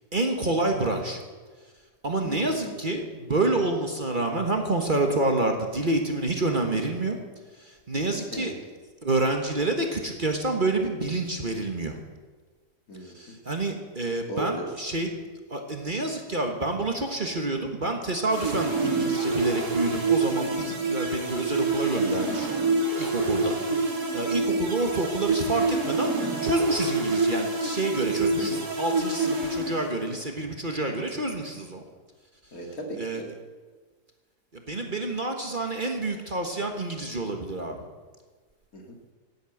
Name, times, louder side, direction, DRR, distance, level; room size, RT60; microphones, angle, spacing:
voice 1, 0.1-1.2 2.0-7.2 7.6-8.5 9.0-12.0 13.0-15.1 15.5-22.5 23.0-23.6 24.1-26.2 26.4-31.8 33.0-33.2 34.5-37.8, right 2 dB, 30° right, 3 dB, 1.5 m, -28 dB
voice 2, 2.2-2.7 8.3-8.5 12.9-13.3 14.3-14.7 23.7-23.8 24.5-24.7 28.4-28.6 32.5-33.3 38.7-39.1, right 1 dB, 60° left, 2 dB, 2.7 m, -37 dB
sound 1, 18.3-30.2, right 3 dB, 75° right, 3.1 m, -27 dB
17.5 x 8.7 x 7.9 m, 1.4 s
omnidirectional pair, 1.7 m